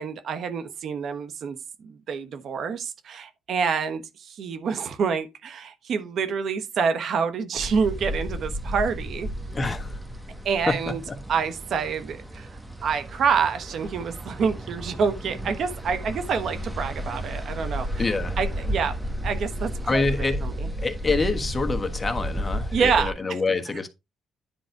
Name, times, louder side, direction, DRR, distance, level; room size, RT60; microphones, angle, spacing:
voice 1, 0.0-1.6 1.8-9.3 10.4-11.0 11.3-18.0 18.4-19.0 19.2-20.0 20.4-20.5 22.7-23.1, right 6 dB, 65° right, 1.2 m, -27 dB
sound 1, 7.6-23.1, equal, 10° right, 1.7 m, -33 dB
voice 2, 9.5-10.0 10.7-11.2 18.0-18.4 19.8-20.4 20.8-23.9, left 3 dB, 25° left, 1.3 m, -26 dB
10.0 x 4.0 x 4.6 m
cardioid pair, 90°, 0 cm